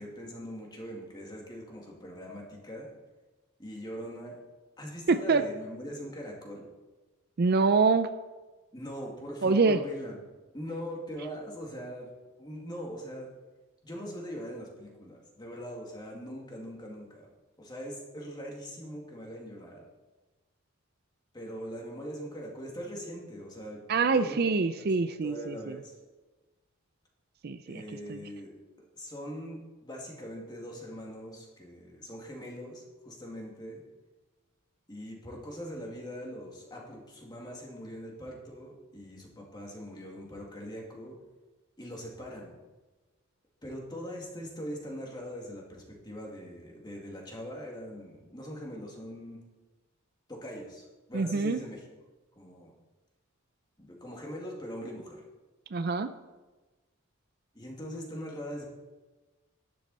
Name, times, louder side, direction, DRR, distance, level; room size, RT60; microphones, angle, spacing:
voice 1, 0.0-2.9 3.6-4.4 4.8-6.7 8.7-10.2 10.5-12.1 12.4-13.3 13.8-17.3 17.6-19.8 21.3-23.8 24.1-24.4 24.8-24.9 25.2-25.9 27.7-28.5 28.9-33.8 34.9-41.2 41.8-42.6 43.6-49.4 50.3-51.9 52.4-52.7 53.8-55.2 57.5-58.7, equal, 20° left, -1 dB, 2.3 m, -41 dB
voice 2, 5.1-5.4 7.4-8.1 9.4-9.8 23.9-25.7 27.4-27.8 28.1-28.2 51.1-51.6 55.7-56.1, right 4 dB, 45° right, 11 dB, 0.4 m, -25 dB
12.0 x 10.5 x 4.2 m, 1.2 s
head